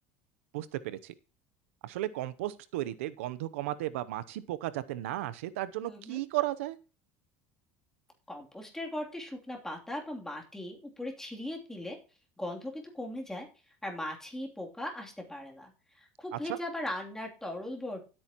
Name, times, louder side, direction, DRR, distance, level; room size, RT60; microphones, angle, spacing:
voice 1, 0.5-1.1 1.8-6.8 16.3-16.6, right 15 dB, 85° right, 15 dB, 0.7 m, -34 dB
voice 2, 5.8-6.2 8.3-12.0 12.4-18.1, left 1 dB, 5° left, 0 dB, 3.0 m, -39 dB
16.0 x 8.9 x 3.0 m, 0.35 s
supercardioid pair, 100°, 7 cm